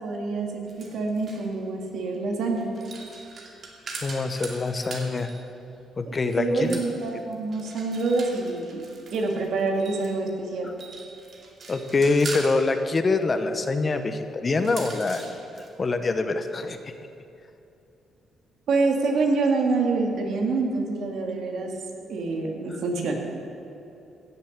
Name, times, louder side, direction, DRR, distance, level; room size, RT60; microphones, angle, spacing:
voice 1, 0.0-0.6 0.9-2.7 6.1-8.8 9.1-10.7 18.7-21.7 22.1-23.1, right 3 dB, 70° right, 1 dB, 2.2 m, -26 dB
sound 1, 0.7-1.5 2.6-5.4 6.3-10.2 10.7-12.6 14.5-15.7, right 3 dB, 50° right, 2.4 m, -41 dB
voice 2, 4.0-5.3 6.0-6.8 11.7-15.2 15.8-16.9, left 3 dB, 35° left, 8 dB, 0.9 m, -25 dB
16.0 x 7.0 x 7.3 m, 2.8 s
cardioid pair, 90°, 0 cm